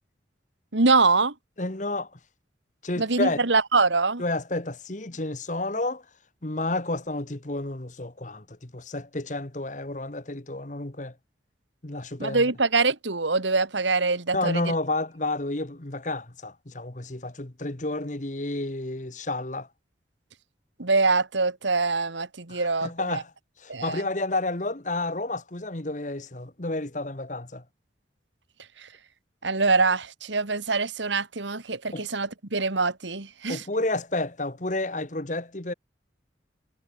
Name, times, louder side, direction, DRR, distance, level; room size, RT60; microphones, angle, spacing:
voice 1, 0.7-1.3 3.0-4.2 12.2-14.6 20.8-23.2 23.7-24.0 28.8-28.9 29.4-33.6, right 3 dB, 85° right, 2.0 m, -24 dB
voice 2, 1.6-2.2 2.8-3.4 4.2-6.0 6.4-11.1 11.8-12.5 14.3-19.7 22.5-23.3 23.6-27.6 31.9-32.1 33.5-35.7, left 2 dB, 40° left, 1.5 m, -30 dB
head